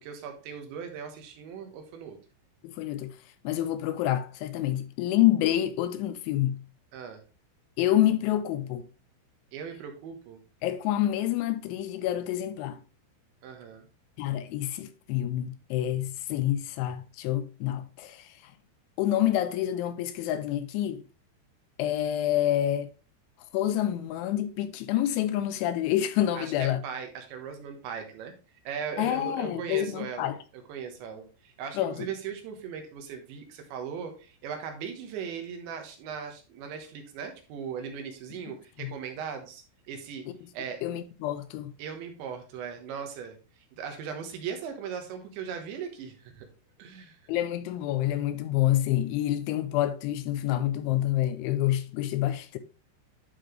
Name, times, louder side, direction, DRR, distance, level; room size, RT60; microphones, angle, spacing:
voice 1, 0.0-2.2 6.9-7.2 9.5-10.4 13.4-13.9 26.4-28.3 28.6-30.3 30.7-40.2 40.5-40.8 41.8-43.4 43.8-46.5 46.8-47.2, right 7 dB, 75° right, 3.3 m, -38 dB
voice 2, 2.6-3.1 3.4-6.6 7.8-8.9 10.6-12.8 14.2-18.5 19.0-21.0 21.8-22.9 23.5-26.8 29.0-30.4 31.8-32.0 38.8-38.9 40.8-41.7 47.3-52.6, left 13 dB, 85° left, 2.9 m, -27 dB
11.5 x 4.2 x 3.2 m
omnidirectional pair, 5.6 m